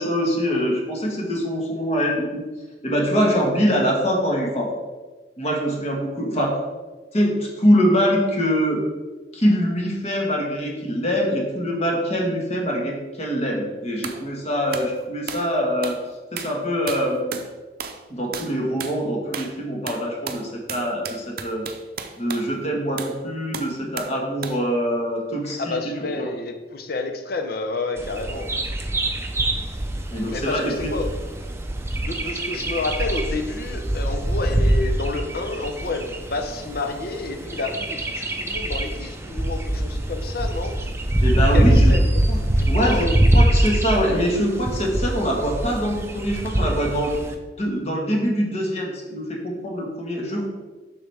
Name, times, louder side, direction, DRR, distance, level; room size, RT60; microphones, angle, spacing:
voice 1, 0.0-2.4 2.8-4.7 5.4-6.6 7.1-8.8 9.3-16.0 16.3-17.4 18.1-21.6 22.2-25.9 30.1-30.7 41.2-41.9 42.3-42.4 42.7-47.2 47.6-50.5, equal, 35° left, -1 dB, 1.6 m, -23 dB
sound 1, 14.0-14.2 14.7-14.9 15.3-15.5 15.8-16.0 16.4-16.6 16.9-17.5 17.8-18.0 18.3-18.5 18.8-19.0 19.3-19.6 19.9-22.5 23.0-23.2 23.5-24.2 24.4-24.6, right 6 dB, 55° right, 0.6 m, -34 dB
voice 2, 25.6-28.5 30.3-31.1 32.0-40.7 41.4-42.1 42.5-43.1, left 3 dB, 55° left, 5 dB, 0.8 m, -29 dB
Bird vocalization bird call bird song, 28.0-47.3, right 1 dB, 15° right, 0.6 m, -23 dB
7.2 x 6.0 x 3.5 m, 1.3 s
head